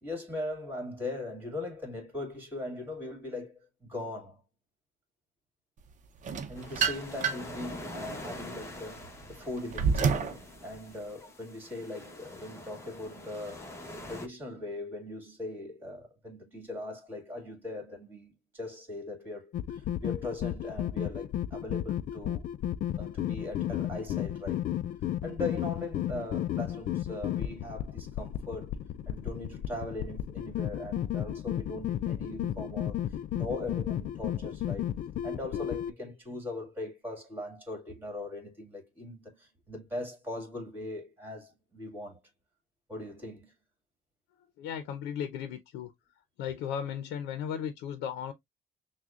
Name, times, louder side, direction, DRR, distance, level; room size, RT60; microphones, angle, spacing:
voice 1, 0.0-4.4 6.5-13.7 14.1-22.5 23.0-24.7 25.2-28.8 29.1-34.9 35.2-42.2 42.9-43.5, left 2 dB, 10° right, 2.3 m, -40 dB
sound 1, 6.2-7.6 8.1-10.4, right 6 dB, 45° right, 0.8 m, -29 dB
sound 2, 6.6-14.3, left 1 dB, 15° left, 1.2 m, -45 dB
sound 3, 19.5-35.9, left 11 dB, 55° left, 0.4 m, -33 dB
voice 2, 44.6-45.9 46.4-48.3, left 8 dB, 90° left, 0.7 m, -35 dB
6.1 x 2.3 x 2.4 m
cardioid pair, 110°, 17 cm